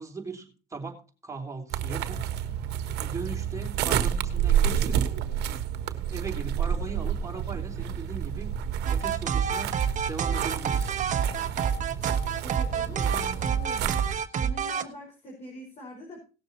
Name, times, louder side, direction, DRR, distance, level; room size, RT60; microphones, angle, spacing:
voice 1, 0.0-2.3 3.0-5.0 6.1-8.5 8.9-9.7 10.1-10.9, right 4 dB, 20° right, 1 dB, 3.5 m, -38 dB
sound 1, 1.7-14.2, right 9 dB, 80° right, 1.3 m, -30 dB
sound 2, 8.8-14.8, right 7 dB, 45° right, 1.3 m, -27 dB
voice 2, 12.4-14.1 14.4-16.2, left 1 dB, 40° left, -1 dB, 4.8 m, -43 dB
18.0 x 6.8 x 4.3 m, 0.34 s
cardioid pair, 110°, 17 cm